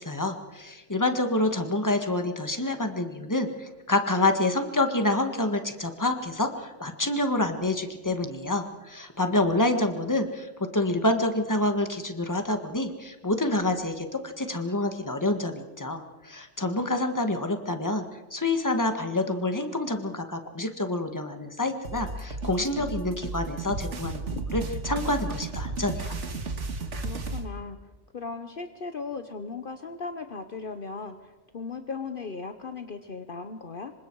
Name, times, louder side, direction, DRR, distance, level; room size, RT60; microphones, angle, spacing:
voice 1, 0.0-18.0 18.3-26.1, left 2 dB, 15° left, 6 dB, 1.7 m, -27 dB
sound 1, 21.8-27.5, right 3 dB, 85° right, 2.0 m, -33 dB
voice 2, 22.8-23.1 24.3-24.4 27.0-27.8 28.1-33.9, left 4 dB, 50° left, 8 dB, 1.2 m, -37 dB
27.0 x 24.5 x 4.8 m, 1.2 s
omnidirectional pair, 1.2 m